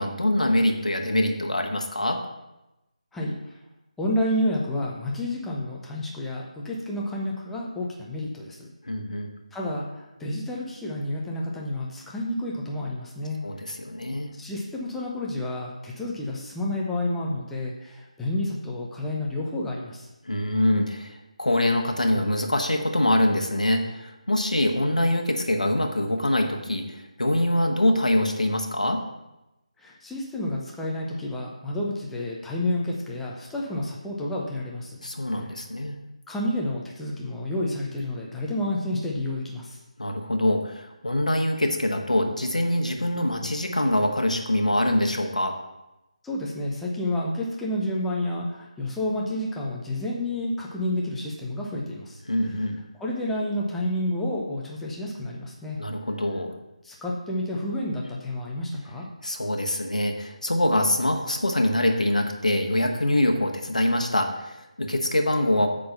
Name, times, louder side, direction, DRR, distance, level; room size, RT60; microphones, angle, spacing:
voice 1, 0.0-2.2 8.9-9.3 13.4-14.3 20.3-29.0 35.0-36.0 40.0-45.6 52.3-52.8 55.8-56.5 59.2-65.7, left 1 dB, 75° left, 3 dB, 1.3 m, -24 dB
voice 2, 4.0-8.7 9.5-13.4 14.4-20.1 29.8-35.0 36.3-39.8 46.2-52.2 52.9-55.8 56.8-59.0, left 1 dB, 5° left, -4 dB, 0.7 m, -30 dB
8.5 x 3.8 x 5.6 m, 0.96 s
figure-of-eight pair, 155°, 4 cm